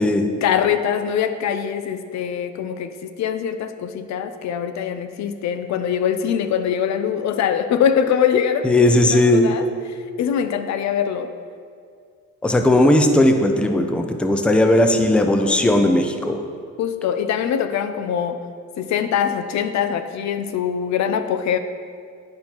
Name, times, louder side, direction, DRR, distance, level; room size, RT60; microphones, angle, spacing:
voice 1, 0.4-9.7 10.2-11.3 16.8-18.4 18.8-21.6, left 8 dB, 65° left, 9 dB, 0.5 m, -23 dB
voice 2, 8.6-9.5 12.4-16.4, left 1 dB, 5° left, 6 dB, 0.4 m, -17 dB
10.5 x 4.3 x 2.9 m, 2.2 s
cardioid pair, 90°, 30 cm